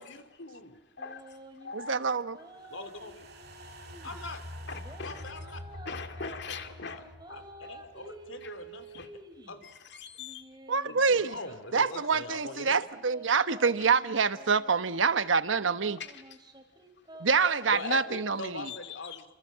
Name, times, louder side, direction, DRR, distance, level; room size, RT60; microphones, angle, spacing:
voice 1, 0.0-0.8 2.7-3.2 4.0-4.4 5.0-5.6 6.9-7.0 7.3-7.4 7.7-8.8 9.5-9.6 10.8-12.8 17.7-19.2, left 3 dB, 80° left, 2.8 m, -41 dB
voice 2, 1.0-2.1 2.5-2.8 3.8-4.0 4.7-7.1 7.6-7.7 8.4-8.6 8.8-9.1 9.6-10.5 16.0-16.4 17.1-17.3 18.7-19.2, left 5 dB, 60° left, 2.3 m, -43 dB
sound 1, 1.0-1.9 2.3-4.2 4.7-9.6 10.2-14.9 15.5-18.7, right 2 dB, 20° right, 3.0 m, -51 dB
voice 3, 1.7-2.4 10.7-11.4 11.7-16.0 17.2-18.7, right 5 dB, 75° right, 1.1 m, -26 dB
sound 2, 2.6-9.0 9.3-9.4, left 1 dB, 55° right, 2.8 m, -46 dB
30.0 x 25.5 x 7.4 m
head